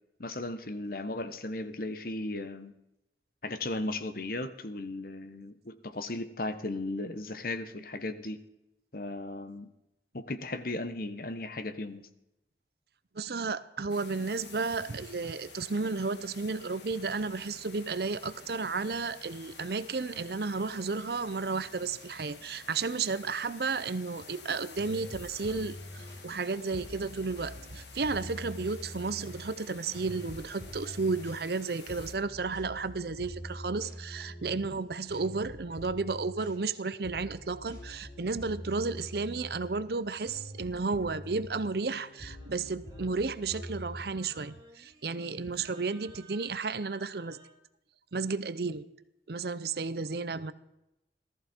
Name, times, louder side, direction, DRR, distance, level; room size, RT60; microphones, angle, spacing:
voice 1, 0.2-2.7 3.4-8.4 8.9-9.7 10.1-12.1, left 2 dB, 50° left, 1.1 m, -36 dB
voice 2, 13.1-47.4 48.1-48.9 49.3-50.5, right 4 dB, 60° right, 0.7 m, -33 dB
sound 1, 13.9-32.1, left 4 dB, 75° left, 2.2 m, -51 dB
sound 2, 24.4-44.0, equal, 25° left, 6.0 m, -45 dB
Singing, 41.5-47.6, right 2 dB, 20° right, 3.4 m, -58 dB
18.5 x 14.0 x 4.5 m
head